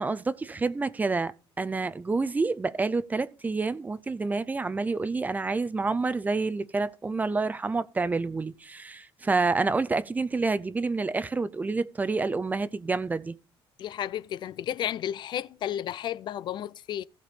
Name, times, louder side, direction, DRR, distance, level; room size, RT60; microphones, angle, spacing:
voice 1, 0.0-13.4, right 3 dB, 15° right, 0.5 m, -28 dB
voice 2, 13.8-17.1, left 11 dB, 55° left, 0.4 m, -32 dB
15.5 x 5.3 x 4.1 m
cardioid pair, 135°, 9 cm